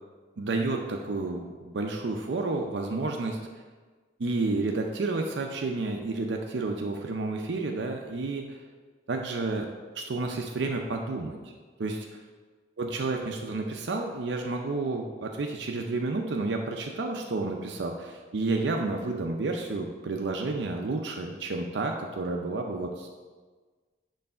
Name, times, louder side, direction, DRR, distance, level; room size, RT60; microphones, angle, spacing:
voice 1, 0.4-3.4 4.2-8.6 9.1-9.7 9.9-11.5 11.8-12.1 12.8-23.1, right 3 dB, 80° right, 2 dB, 0.5 m, -30 dB
6.8 x 3.2 x 5.4 m, 1.4 s
head